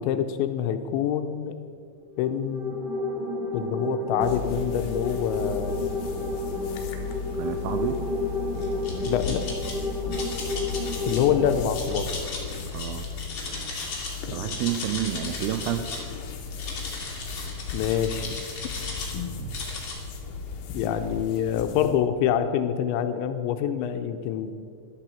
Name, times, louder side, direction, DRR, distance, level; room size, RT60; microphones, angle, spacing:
voice 1, 0.0-1.5 2.2-2.8 3.5-5.8 9.1-9.5 11.1-12.1 14.3-14.6 17.7-18.4 20.7-24.5, left 9 dB, 85° left, 8 dB, 2.9 m, -26 dB
sound 1, 2.1-11.5, left 2 dB, 15° right, 3.3 m, -31 dB
sound 2, 4.2-22.0, left 5 dB, 65° left, 2.5 m, -36 dB
voice 2, 7.4-8.0 12.7-13.0 14.3-15.9 19.4-19.6, right 11 dB, 90° right, 7 dB, 2.2 m, -29 dB
sound 3, 8.6-9.7 10.1-11.2 11.7-14.1 14.4-16.1 16.5-19.1 19.5-20.0, left 3 dB, 40° left, 2.6 m, -36 dB
12.0 x 8.8 x 7.6 m, 2.2 s
omnidirectional pair, 5.3 m